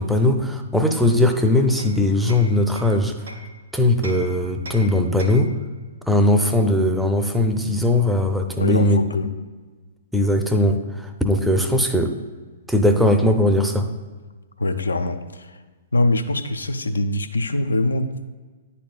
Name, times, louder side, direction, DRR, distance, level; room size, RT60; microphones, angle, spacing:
voice 1, 0.0-3.1 3.7-5.5 6.1-9.0 10.1-12.2 12.7-13.9, left 1 dB, 5° right, 5 dB, 0.5 m, -19 dB
Hammer, 1.0-3.5 4.0-5.6, right 1 dB, 70° right, 1.0 m, -41 dB
voice 2, 8.6-9.3 14.6-15.6 15.9-18.2, left 2 dB, 75° left, 9 dB, 0.4 m, -23 dB
9.8 x 4.2 x 2.3 m, 1.3 s
figure-of-eight pair, 115°, 0 cm